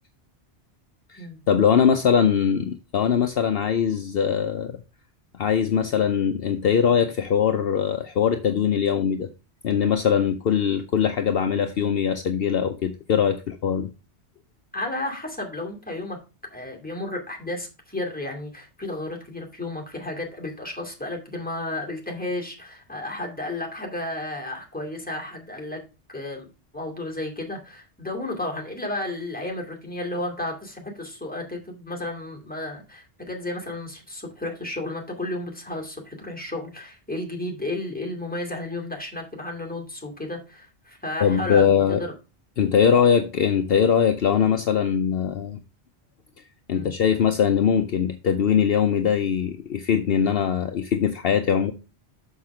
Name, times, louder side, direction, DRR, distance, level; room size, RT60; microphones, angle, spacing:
voice 1, 1.1-4.8 5.4-9.3 9.6-13.9 41.2-42.0 42.6-45.6 46.7-51.7, left 7 dB, 60° left, 0.8 m, -21 dB
voice 2, 14.7-16.2 16.5-25.8 26.1-26.5 26.7-42.1 46.7-46.9, left 2 dB, 10° left, 2.3 m, -33 dB
6.4 x 6.0 x 4.8 m
omnidirectional pair, 1.1 m